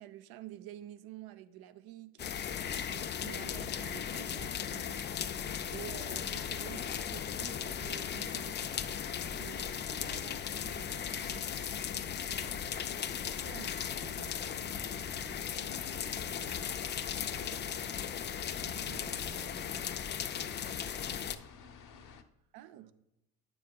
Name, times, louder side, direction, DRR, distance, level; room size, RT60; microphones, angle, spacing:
voice 1, 0.0-2.4 2.9-5.0 5.7-8.6 9.4-9.6 10.0-11.5 13.4-13.7 17.5-17.6 18.8-19.1 22.5-22.9, right 12 dB, 55° right, 0.7 m, -49 dB
sound 1, 2.2-21.4, left 8 dB, 25° left, 0.4 m, -37 dB
sound 2, 6.1-22.2, left 6 dB, 45° left, 0.8 m, -53 dB
voice 2, 9.2-10.4 10.8-11.3 11.6-13.1 13.4-22.2 22.7-22.9, right 3 dB, 80° right, 1.0 m, -57 dB
Wind instrument woodwind instrument, 12.8-20.3, left 2 dB, 90° left, 2.1 m, -62 dB
9.1 x 7.1 x 2.3 m
hypercardioid pair, 65°, 44 cm